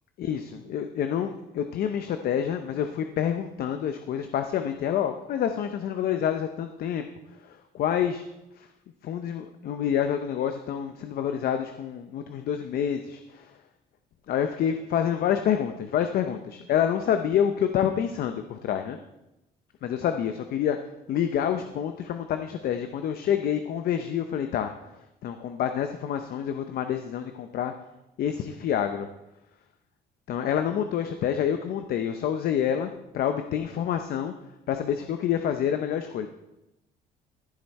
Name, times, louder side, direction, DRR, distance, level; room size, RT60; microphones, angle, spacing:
voice 1, 0.2-7.0 7.4-8.2 8.6-8.7 9.0-13.6 14.3-19.0 19.8-20.8 21.1-24.7 25.2-27.7 28.2-29.1 30.3-34.3 34.7-36.3, left 9 dB, 65° left, 7 dB, 0.8 m, -27 dB
14.5 x 7.7 x 4.3 m, 0.91 s
cardioid pair, 110°, 17 cm